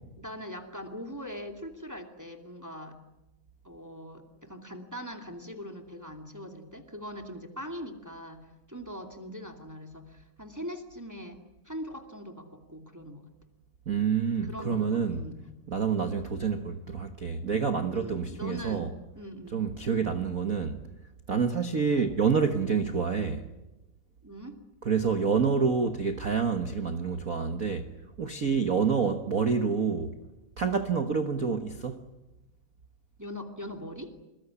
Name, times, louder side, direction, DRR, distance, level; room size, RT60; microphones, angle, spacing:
voice 1, 0.2-3.0 3.6-13.3 14.3-15.5 17.9-19.6 24.2-24.6 33.2-34.1, equal, 5° right, 2.0 m, -41 dB
voice 2, 13.9-15.2 15.7-18.9 19.5-20.8 21.3-23.5 24.8-27.9 28.2-30.1 30.6-32.1, right 6 dB, 85° right, 0.7 m, -28 dB
26.5 x 21.5 x 9.9 m
omnidirectional pair, 3.6 m